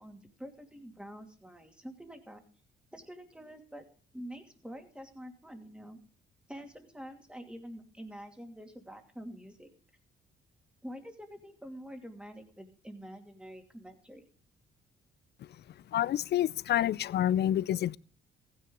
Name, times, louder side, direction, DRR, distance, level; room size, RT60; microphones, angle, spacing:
voice 1, 0.0-2.4 2.9-3.8 4.1-6.0 6.5-9.7 10.8-14.3, equal, 5° right, 2.6 m, -46 dB
voice 2, 15.9-18.0, left 11 dB, 55° left, 0.4 m, -28 dB
15.0 x 9.9 x 3.8 m
cardioid pair, 90°, 20 cm